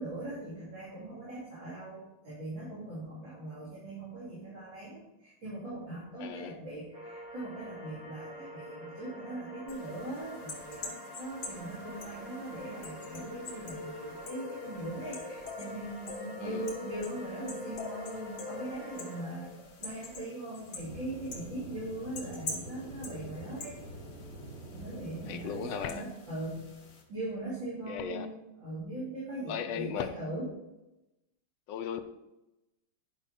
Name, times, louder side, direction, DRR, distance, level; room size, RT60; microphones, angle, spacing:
voice 1, 0.0-19.5 19.8-23.8 24.7-26.7 27.1-28.3 28.6-30.5, right 1 dB, 80° right, -8 dB, 3.5 m, -40 dB
voice 2, 6.2-6.6 16.4-16.7 25.3-26.0 27.9-28.3 29.5-30.1 31.7-32.0, left 8 dB, 75° left, 8 dB, 1.4 m, -36 dB
sound 1, 6.9-19.2, right 1 dB, 20° right, 1.9 m, -47 dB
sound 2, 9.7-27.0, left 4 dB, 60° left, 2.2 m, -45 dB
Aircraft / Engine, 20.8-25.8, right 1 dB, 45° right, 2.3 m, -46 dB
10.0 x 6.0 x 4.2 m, 0.97 s
omnidirectional pair, 2.1 m